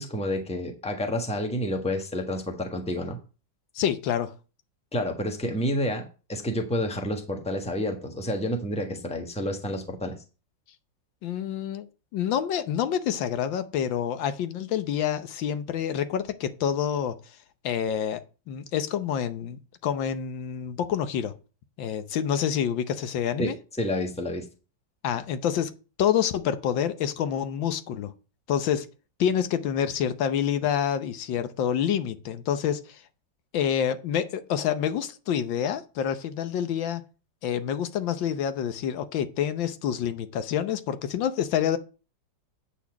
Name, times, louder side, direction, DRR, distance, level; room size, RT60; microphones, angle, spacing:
voice 1, 0.0-3.2 4.9-10.2 23.4-24.4, left 1 dB, 5° left, 1.1 m, -29 dB
voice 2, 3.7-4.3 11.2-11.9 12.1-17.2 17.6-18.2 18.5-21.3 21.8-23.6 25.0-25.7 26.0-28.1 28.5-28.9 29.2-33.0 33.5-37.0 37.4-41.8, left 9 dB, 85° left, 1.6 m, -27 dB
8.6 x 4.3 x 7.1 m
omnidirectional pair, 2.0 m